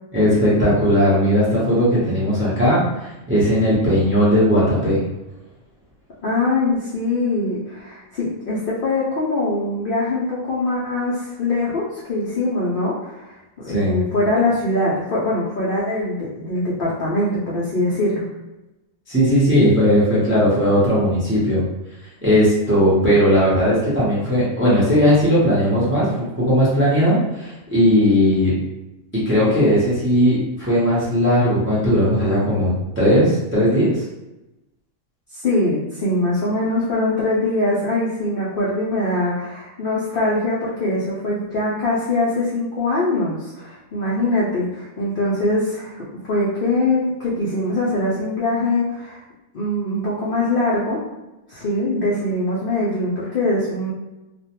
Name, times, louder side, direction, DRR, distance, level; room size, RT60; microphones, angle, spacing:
voice 1, 0.1-5.0 13.7-14.1 19.1-21.6 22.2-28.5 29.1-34.0, equal, 15° right, -8 dB, 0.4 m, -17 dB
voice 2, 6.2-18.2 35.3-49.2 49.5-51.0 51.5-53.9, left 2 dB, 65° left, -7 dB, 0.5 m, -22 dB
2.4 x 2.1 x 2.8 m, 0.99 s
omnidirectional pair, 1.5 m